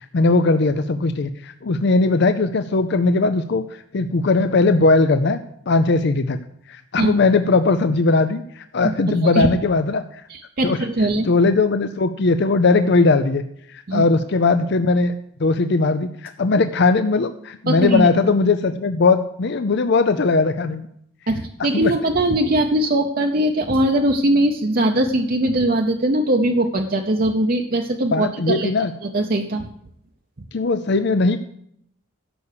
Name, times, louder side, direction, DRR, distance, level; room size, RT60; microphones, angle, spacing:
voice 1, 0.1-5.4 5.7-6.4 6.7-10.2 10.6-10.8 11.2-13.4 13.7-15.1 15.4-20.9 21.7-21.9 28.1-28.9 30.5-31.4, left 3 dB, 55° left, 10 dB, 0.5 m, -19 dB
voice 2, 8.8-9.5 10.3-11.3 13.9-14.0 17.7-18.1 21.3-28.7 29.0-29.7, right 1 dB, 45° right, 3 dB, 0.7 m, -20 dB
11.0 x 7.1 x 6.6 m, 0.71 s
head